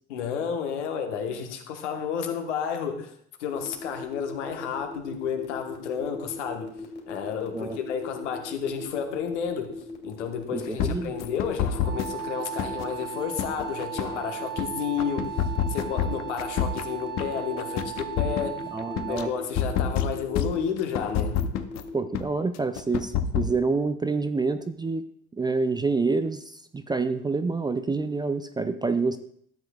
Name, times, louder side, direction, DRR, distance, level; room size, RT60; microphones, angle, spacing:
voice 1, 0.1-3.1 3.4-6.7 7.1-9.8 10.0-18.7 19.0-21.4, left 7 dB, 70° left, 5 dB, 1.3 m, -31 dB
sound 1, 3.5-21.9, left 3 dB, 30° left, 2.4 m, -39 dB
voice 2, 10.5-11.1 18.7-19.3 21.9-25.0 25.4-29.2, right 4 dB, 10° right, 10 dB, 0.4 m, -27 dB
sound 2, 10.8-12.2 12.6-14.7 15.0-17.3 17.6-19.2 19.5-21.8 22.1-22.2 22.5-23.6, left 8 dB, 50° left, 0.8 m, -27 dB
Wind instrument woodwind instrument, 11.8-19.5, right 11 dB, 80° right, 2.8 m, -37 dB
13.0 x 7.8 x 2.3 m, 0.64 s
figure-of-eight pair, 65°, 36 cm